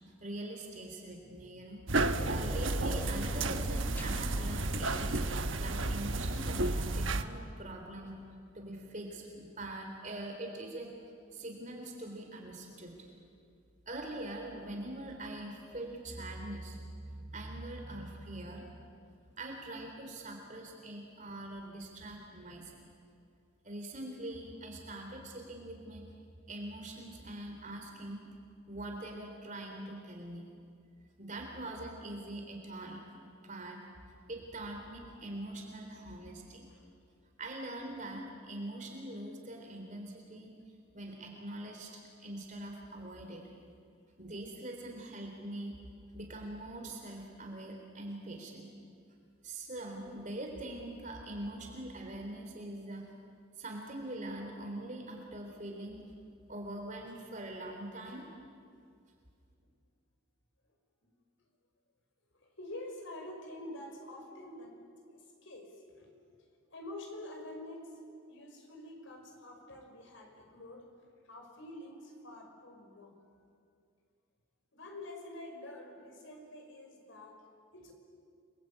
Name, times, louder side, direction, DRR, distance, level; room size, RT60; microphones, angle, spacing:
voice 1, 0.2-8.2 8.5-10.9 11.3-13.1 13.9-18.7 19.4-22.8 23.6-26.0 26.5-28.2 28.7-30.5 31.2-33.9 34.3-36.6 37.4-40.6 40.9-43.4 44.2-45.8 46.1-48.7 49.4-53.1 53.6-56.0 56.5-58.2, right 1 dB, 40° right, 2 dB, 3.6 m, -43 dB
sound 1, 1.9-7.2, right 2 dB, 70° right, 1.1 m, -32 dB
sound 2, 2.1-7.5, equal, 10° left, 1.1 m, -48 dB
voice 2, 62.6-66.4 66.7-68.0 68.3-70.9 71.2-73.2 74.7-77.4 77.7-77.9, left 1 dB, 70° left, 2 dB, 5.9 m, -47 dB
30.0 x 22.0 x 8.8 m, 2.4 s
head